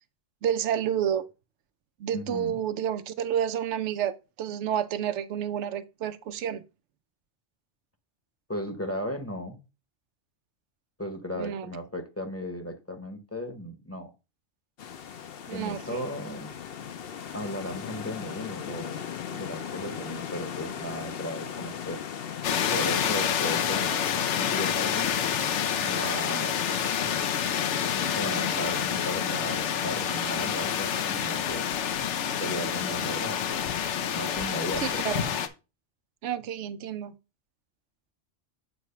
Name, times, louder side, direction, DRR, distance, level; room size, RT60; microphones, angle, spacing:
voice 1, 0.4-1.3 2.0-6.6 11.4-11.7 15.5-16.0 34.8-35.3 36.2-37.1, right 9 dB, 85° right, 0.9 m, -30 dB
voice 2, 2.1-2.6 8.5-9.6 11.0-14.1 15.5-16.6 17.3-22.0 22.7-23.9 24.3-25.1 25.8-26.7 27.9-31.6 32.4-33.5 34.1-35.0, equal, 15° left, 0.8 m, -36 dB
sound 1, 14.8-25.1, left 8 dB, 60° left, 0.9 m, -38 dB
sound 2, 22.4-35.5, left 8 dB, 85° left, 1.0 m, -28 dB
8.1 x 3.0 x 5.7 m
omnidirectional pair, 1.2 m